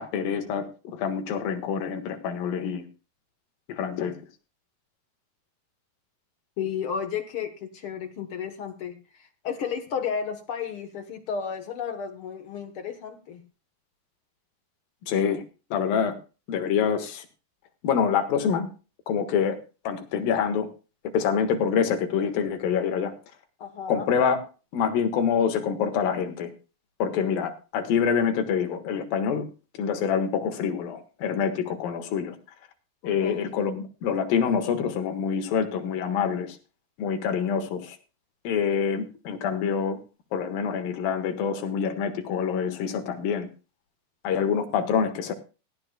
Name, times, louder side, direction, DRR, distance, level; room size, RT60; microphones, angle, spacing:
voice 1, 0.0-2.9 3.7-4.2 15.0-15.4 15.7-16.2 16.5-17.3 17.8-18.7 19.1-19.6 19.9-20.7 21.1-23.1 23.9-24.4 24.7-26.5 27.0-29.5 29.7-32.4 33.0-36.6 37.0-38.0 38.5-40.0 40.3-43.5 44.2-45.3, left 7 dB, 85° left, 6 dB, 3.4 m, -26 dB
voice 2, 6.6-13.4 23.6-24.1 33.2-33.5, left 7 dB, 60° left, 7 dB, 1.5 m, -33 dB
17.0 x 13.5 x 2.3 m, 0.32 s
omnidirectional pair, 4.0 m